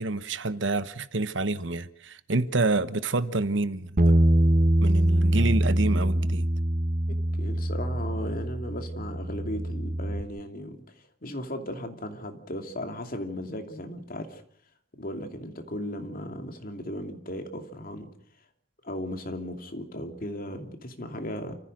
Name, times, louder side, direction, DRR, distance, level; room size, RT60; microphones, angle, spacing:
voice 1, 0.0-4.1 4.8-6.5, right 2 dB, 75° right, 1.1 m, -28 dB
Bass guitar, 4.0-10.2, right 1 dB, 45° right, 1.0 m, -24 dB
voice 2, 7.1-10.8 11.2-14.4 14.9-18.1 18.8-21.6, left 1 dB, 50° left, 2.7 m, -36 dB
29.0 x 15.0 x 6.4 m
head